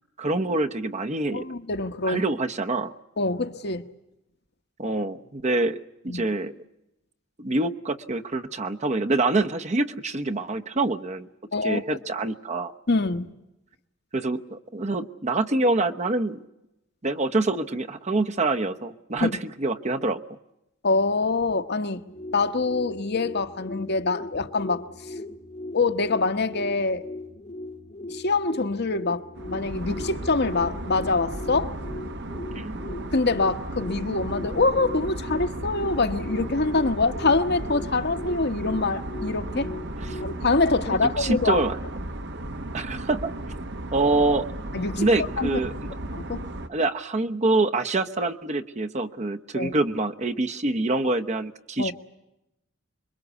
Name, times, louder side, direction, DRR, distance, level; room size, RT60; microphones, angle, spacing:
voice 1, 0.2-1.5 2.0-2.9 4.8-6.5 7.4-11.3 11.6-12.7 14.1-16.4 17.0-20.2 32.5-32.8 40.0-40.2 40.9-41.8 42.7-43.3 43.9-44.5 45.0-45.7 46.7-51.9, right 2 dB, 35° right, 1.0 m, -26 dB
voice 2, 1.3-2.2 3.2-3.8 6.1-6.2 11.5-11.8 12.9-13.3 19.2-19.3 20.8-22.0 22.3-24.8 25.7-27.0 28.1-31.7 33.1-39.7 40.2-41.6 44.7-45.1 45.4-45.5 46.1-46.4 49.5-49.7 51.8-51.9, left 3 dB, 55° left, 1.2 m, -25 dB
sound 1, 21.9-40.3, left 2 dB, 35° left, 1.1 m, -39 dB
sound 2, 29.4-46.7, right 1 dB, 60° right, 1.2 m, -35 dB
26.0 x 23.0 x 8.2 m
head